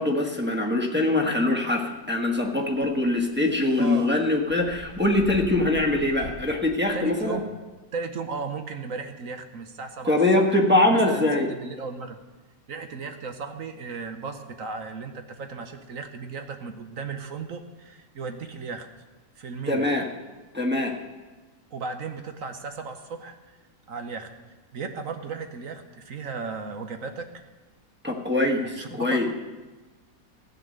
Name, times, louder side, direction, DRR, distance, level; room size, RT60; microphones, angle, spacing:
voice 1, 0.0-7.4 10.1-11.5 19.7-20.1 20.5-20.9 28.0-29.3, left 2 dB, 5° right, -2 dB, 1.2 m, -23 dB
sound 1, 2.4-7.5, equal, 40° right, 2.7 m, -44 dB
voice 2, 3.8-4.2 6.9-7.5 7.9-10.2 10.5-10.6 10.9-12.2 12.7-18.9 19.4-19.9 21.7-23.6 23.9-24.3 24.7-27.3 28.8-29.3, right 4 dB, 55° right, 7 dB, 1.1 m, -35 dB
15.0 x 9.0 x 6.5 m, 1.2 s
omnidirectional pair, 1.9 m